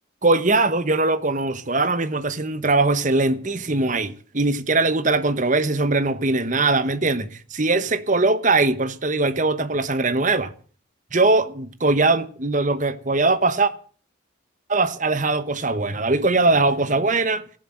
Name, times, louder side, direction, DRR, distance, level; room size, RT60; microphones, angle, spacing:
voice 1, 0.2-10.5 11.1-13.7 14.7-17.4, right 3 dB, 40° right, 1.1 m, -21 dB
15.0 x 11.5 x 7.7 m
head